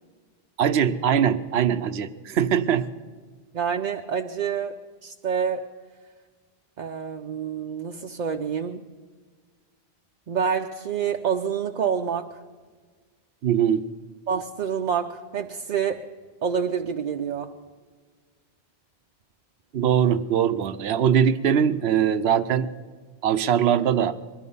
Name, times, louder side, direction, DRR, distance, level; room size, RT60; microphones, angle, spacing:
voice 1, 0.6-2.9 13.4-13.9 19.7-22.7 23.2-24.2, right 8 dB, 85° right, 12 dB, 0.9 m, -21 dB
voice 2, 3.5-4.7 5.0-5.6 6.8-8.8 10.3-12.4 14.3-16.0 16.4-17.5, right 7 dB, 50° right, 3 dB, 0.6 m, -27 dB
21.5 x 12.5 x 5.4 m, 1.5 s
omnidirectional pair, 1.1 m